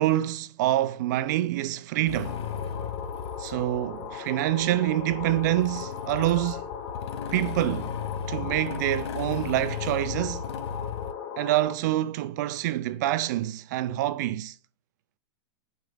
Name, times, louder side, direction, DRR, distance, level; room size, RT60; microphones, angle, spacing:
voice 1, 0.0-2.4 3.4-6.7 7.3-7.9 8.3-10.5 11.4-14.5, right 14 dB, 40° right, 0.4 m, -26 dB
Motorcycle / Engine starting, 2.1-11.1, left 7 dB, 85° left, 0.7 m, -36 dB
sound 1, 2.2-11.7, left 7 dB, 30° left, 1.2 m, -38 dB
6.5 x 4.6 x 3.9 m
supercardioid pair, 170°, 14 cm